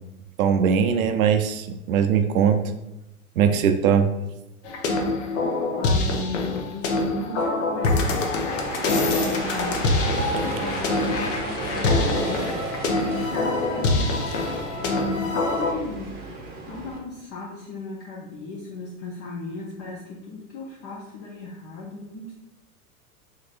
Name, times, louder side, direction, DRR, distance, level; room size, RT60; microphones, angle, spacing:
voice 1, 0.4-2.6 3.4-4.1 10.2-10.5, right 7 dB, 65° right, 7 dB, 0.6 m, -20 dB
sound 1, 4.6-15.7, left 3 dB, 55° left, 0.7 m, -25 dB
voice 2, 5.8-8.3 9.0-9.9 10.4-12.5 12.8-14.1 14.8-16.2 16.7-22.3, left 2 dB, 25° left, -3 dB, 0.4 m, -36 dB
sound 2, 8.6-17.0, right 3 dB, 20° right, 0.7 m, -34 dB
3.8 x 3.1 x 2.4 m, 0.91 s
figure-of-eight pair, 90°, 45 cm